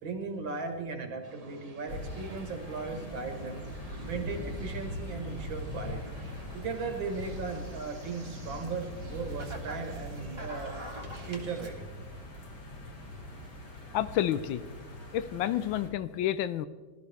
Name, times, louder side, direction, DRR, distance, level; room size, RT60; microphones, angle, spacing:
voice 1, 0.0-3.6 4.0-6.1 6.5-10.8 11.3-11.9, right 4 dB, 70° right, 4 dB, 2.4 m, -37 dB
sound 1, 1.2-11.7, right 3 dB, 35° right, 0.6 m, -50 dB
sound 2, 1.9-15.9, left 1 dB, 55° left, 2.7 m, -42 dB
sound 3, 4.8-11.7, right 1 dB, 15° right, 1.5 m, -49 dB
voice 2, 13.9-14.6 15.1-16.7, left 11 dB, 75° left, 14 dB, 1.3 m, -29 dB
20.5 x 13.0 x 3.5 m, 1.4 s
omnidirectional pair, 2.2 m